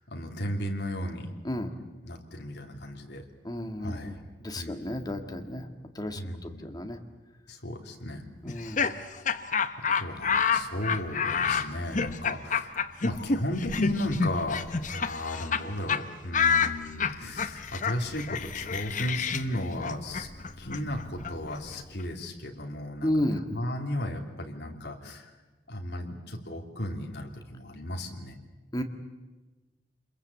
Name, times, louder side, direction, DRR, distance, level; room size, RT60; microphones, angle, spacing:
voice 1, 0.0-1.3 2.0-3.2 3.8-4.2 4.5-5.0 6.1-6.8 7.5-8.3 8.7-9.0 9.8-12.8 13.0-20.3 20.6-25.3 25.7-28.4, left 1 dB, 65° left, 2 dB, 3.0 m, -35 dB
voice 2, 3.4-4.2 4.4-5.7 6.0-6.2 6.6-7.0 8.4-8.8 23.0-23.4 28.7-28.8, left 1 dB, 20° left, 5 dB, 1.9 m, -31 dB
Laughter, 8.5-15.6 15.9-16.0 16.3-22.1, left 6 dB, 45° left, 1.0 m, -29 dB
27.5 x 22.0 x 8.4 m, 1.2 s
head